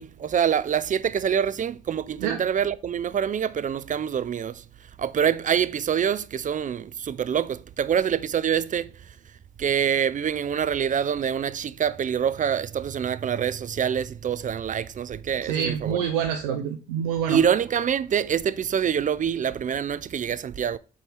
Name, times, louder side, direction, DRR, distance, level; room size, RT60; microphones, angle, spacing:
voice 1, 0.0-4.6 5.0-8.9 9.6-16.0 17.3-20.8, right 8 dB, 40° right, 0.6 m, -25 dB
voice 2, 15.4-17.4, right 8 dB, 85° right, 0.6 m, -26 dB
7.2 x 4.4 x 3.4 m
hypercardioid pair, 45°, 20 cm